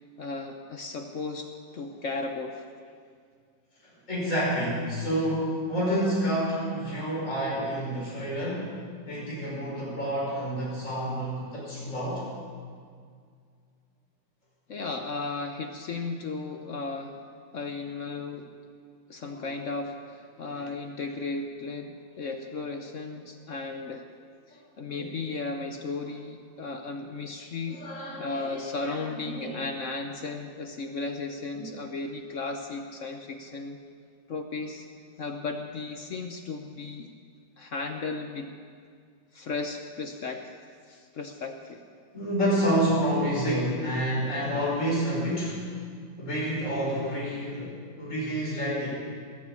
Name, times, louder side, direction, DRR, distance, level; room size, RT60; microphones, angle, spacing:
voice 1, 0.2-2.6 14.7-17.2 17.5-18.5 19.1-24.1 24.5-27.8 28.2-33.8 34.3-34.9 35.2-37.1 37.6-38.5 39.3-40.5 40.9-41.8, left 3 dB, 55° left, 5 dB, 0.9 m, -35 dB
voice 2, 4.1-8.8 9.1-12.3 19.3-19.5 20.5-20.6 24.5-24.6 25.0-25.1 27.7-28.5 28.8-29.0 29.3-29.6 31.5-31.7 42.1-45.7 46.2-48.9, equal, 40° left, -6 dB, 5.7 m, -29 dB
19.5 x 7.2 x 8.3 m, 2.1 s
omnidirectional pair, 2.1 m